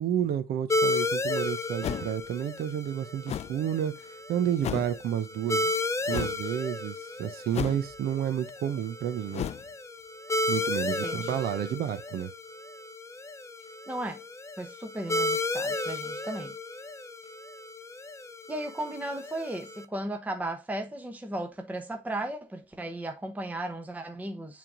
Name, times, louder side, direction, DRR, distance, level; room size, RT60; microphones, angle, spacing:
voice 1, 0.0-5.7 6.1-9.5 10.5-12.3, right 10 dB, 65° right, 0.9 m, -30 dB
sound 1, 0.7-19.8, left 2 dB, 15° left, 0.7 m, -33 dB
sound 2, 1.8-2.2 3.3-3.6 4.6-4.9 6.1-6.4 7.5-8.0 9.3-9.7, left 10 dB, 40° left, 0.4 m, -33 dB
voice 2, 10.9-11.4 13.9-14.2 14.6-16.5 18.5-24.6, right 1 dB, 10° right, 0.9 m, -35 dB
7.5 x 3.7 x 3.7 m
cardioid pair, 110°, 17 cm